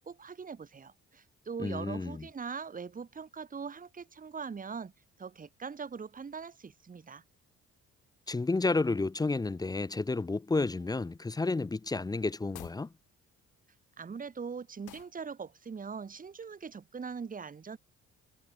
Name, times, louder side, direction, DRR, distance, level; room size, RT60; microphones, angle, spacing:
voice 1, 0.1-4.9 5.2-7.2 14.0-17.8, right 5 dB, 30° right, 1.1 m, -41 dB
voice 2, 1.6-2.3 8.3-12.9, left 3 dB, 15° left, 0.5 m, -31 dB
sound 1, 12.5-12.9 14.9-15.2, left 14 dB, 85° left, 3.8 m, -49 dB
cardioid pair, 90°, 30 cm